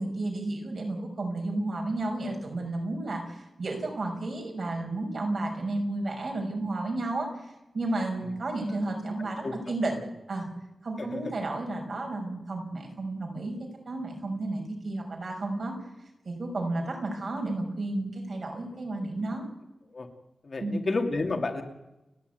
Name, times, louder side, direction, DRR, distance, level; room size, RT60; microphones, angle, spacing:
voice 1, 0.0-7.3 7.7-10.0 10.3-10.5 10.8-15.7 16.2-19.4 20.6-20.9, right 2 dB, 55° right, 2 dB, 5.9 m, -32 dB
voice 2, 9.2-9.6 11.0-11.2 19.9-20.1 20.4-21.6, left 3 dB, 50° left, 4 dB, 2.6 m, -31 dB
29.5 x 10.5 x 9.4 m, 0.95 s
wide cardioid pair, 150°, 0 cm